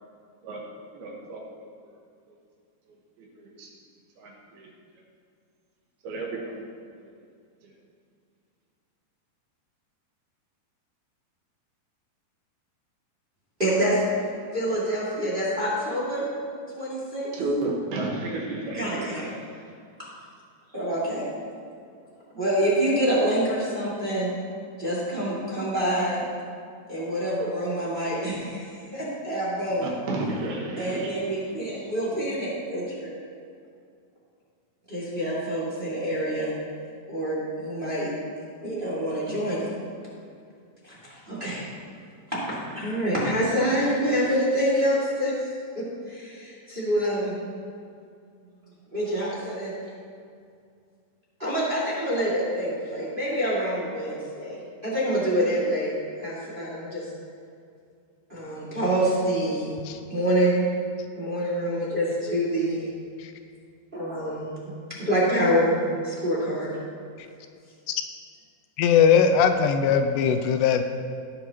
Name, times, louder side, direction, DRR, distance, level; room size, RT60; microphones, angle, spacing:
voice 1, 0.9-1.4 3.4-3.7 4.2-4.7 6.0-6.7 7.0-7.1 17.3-19.3 29.8-31.1, right 2 dB, 70° right, -1 dB, 3.1 m, -31 dB
voice 2, 13.6-14.0 14.5-16.3 16.7-17.3 18.7-19.2 20.7-21.3 22.3-24.3 24.8-26.2 26.9-29.9 30.8-33.1 34.9-36.5 37.1-38.1 38.4-39.8 40.8-41.0 41.3-41.6 42.3-45.4 45.7-47.3 48.9-49.7 51.4-57.0 58.3-59.7 60.1-60.7 61.1-62.9 63.9-64.7 65.0-66.7, equal, 25° right, -7 dB, 1.2 m, -26 dB
voice 3, 68.8-70.8, left 7 dB, 85° left, 7 dB, 2.7 m, -19 dB
18.0 x 7.7 x 2.9 m, 2.3 s
omnidirectional pair, 4.9 m